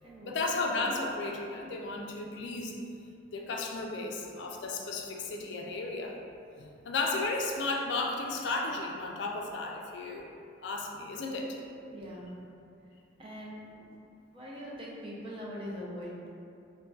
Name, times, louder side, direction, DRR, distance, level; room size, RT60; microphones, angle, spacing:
voice 1, 0.2-2.8 3.3-6.2 6.6-10.3 10.6-11.6, left 3 dB, 65° left, 1 dB, 0.3 m, -34 dB
voice 2, 11.9-12.3 13.2-13.9 14.3-16.3, equal, 30° right, -5 dB, 0.5 m, -42 dB
3.8 x 2.1 x 2.2 m, 2.5 s
head